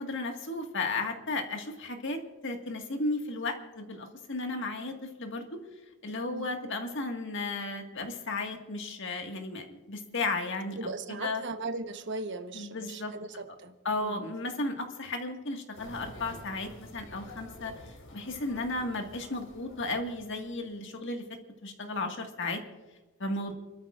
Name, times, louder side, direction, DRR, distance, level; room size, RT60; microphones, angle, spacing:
voice 1, 0.0-5.6 6.0-11.4 12.5-13.1 13.9-21.3 21.6-22.6 23.2-23.6, left 2 dB, 60° left, 3 dB, 1.9 m, -34 dB
voice 2, 10.8-13.7 14.0-14.3, right 3 dB, 60° right, 7 dB, 1.1 m, -38 dB
sound 1, 15.7-20.8, left 1 dB, 85° left, 4.6 m, -49 dB
29.5 x 13.0 x 2.5 m, 1.2 s
head